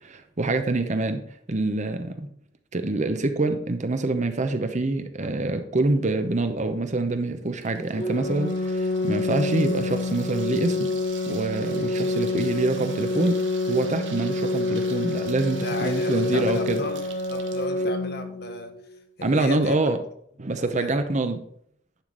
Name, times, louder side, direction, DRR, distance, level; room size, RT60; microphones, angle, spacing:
voice 1, 0.0-1.2 1.5-2.3 2.7-10.9 11.3-13.4 13.7-16.8 19.2-20.0 20.4-21.4, right 2 dB, 40° right, 8 dB, 0.8 m, -25 dB
Water tap faucet / Sink (filling or washing), 6.4-17.7, right 7 dB, 70° right, 1.2 m, -46 dB
Organ, 8.0-19.0, left 2 dB, 40° left, 1.0 m, -27 dB
voice 2, 15.6-17.0 17.3-18.7 19.2-19.8 20.6-20.9, left 2 dB, 55° left, 6 dB, 1.2 m, -35 dB
10.5 x 5.1 x 3.9 m, 0.67 s
head